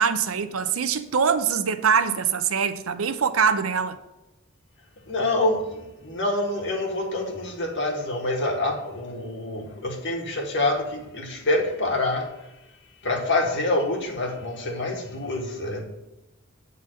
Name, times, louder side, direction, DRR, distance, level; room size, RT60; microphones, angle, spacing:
voice 1, 0.0-4.0, right 6 dB, 85° right, 0.6 m, -23 dB
voice 2, 5.1-12.3 13.0-15.8, left 2 dB, 60° left, 1.7 m, -26 dB
9.0 x 3.9 x 6.4 m
head